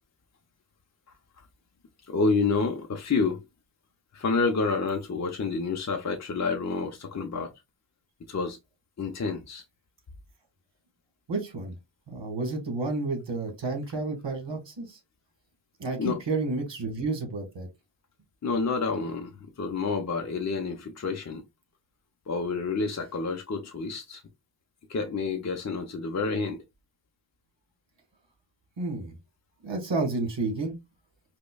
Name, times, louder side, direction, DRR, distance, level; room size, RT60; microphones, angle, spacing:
voice 1, 2.1-3.4 4.1-7.5 8.3-8.6 9.0-9.6 16.0-16.2 18.4-21.4 22.3-24.2 24.9-26.6, left 4 dB, 40° left, 0.6 m, -29 dB
voice 2, 11.3-11.7 12.1-15.0 15.8-17.7 28.8-29.1 29.6-30.7, right 3 dB, 70° right, 1.6 m, -30 dB
5.1 x 2.2 x 2.2 m
wide cardioid pair, 110°, 45 cm